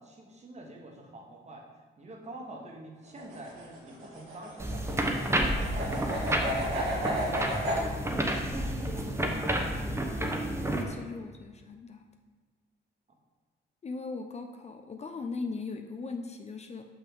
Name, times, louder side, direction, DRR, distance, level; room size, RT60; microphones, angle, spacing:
voice 1, 0.0-1.7 2.0-7.4 8.0-9.6, right 1 dB, 35° right, 0 dB, 1.3 m, -48 dB
sound 1, 3.1-7.8, right 1 dB, 80° right, 2.0 m, -33 dB
sound 2, 4.6-10.8, right 1 dB, 15° right, 0.8 m, -30 dB
voice 2, 10.9-12.0 13.8-16.9, left 4 dB, 35° left, 6 dB, 0.5 m, -38 dB
5.9 x 5.7 x 3.8 m, 1.4 s
cardioid pair, 90°, 20 cm